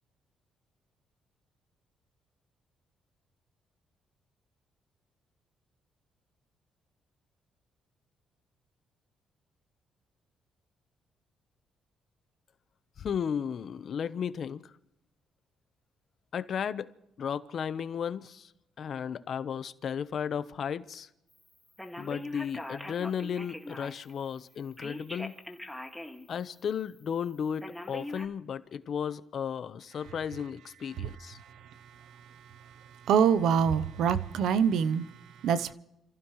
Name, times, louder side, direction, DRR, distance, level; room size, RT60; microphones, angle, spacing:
voice 1, 13.0-14.7 16.3-16.9 17.2-18.5 18.8-21.1 22.0-25.3 26.3-31.4, left 7 dB, 55° left, 1.0 m, -34 dB
Telephone, 21.8-24.1 24.8-26.3 26.7-26.8 27.6-28.3, left 1 dB, 5° left, 2.0 m, -41 dB
voice 2, 33.1-35.0 35.4-35.7, right 7 dB, 80° right, 0.8 m, -24 dB
29.0 x 15.5 x 3.2 m
cardioid pair, 90°, 0 cm